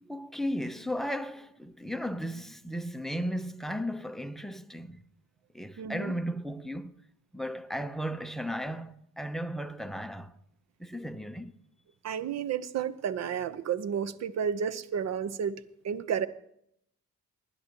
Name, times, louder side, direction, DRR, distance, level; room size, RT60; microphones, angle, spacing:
voice 1, 0.0-5.0 5.5-6.9 7.3-10.4 10.8-11.5, equal, ahead, 0.7 m, -35 dB
voice 2, 5.8-6.1 12.0-15.6 15.8-16.3, right 8 dB, 60° right, 0.8 m, -31 dB
20.5 x 10.5 x 3.0 m
cardioid pair, 90°, 30 cm